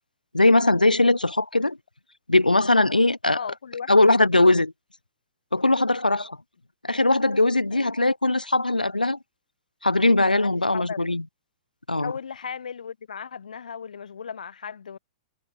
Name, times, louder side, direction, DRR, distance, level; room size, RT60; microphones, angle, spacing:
voice 1, 0.3-1.8 2.3-3.4 3.9-4.7 5.5-6.4 6.8-9.2 9.8-11.2 11.9-12.1, left 2 dB, 85° left, 1.4 m, -20 dB
voice 2, 3.3-3.9 7.7-7.9 10.4-11.0 12.0-15.0, left 7 dB, 70° left, 5.7 m, -36 dB
figure-of-eight pair, 105°, 4 cm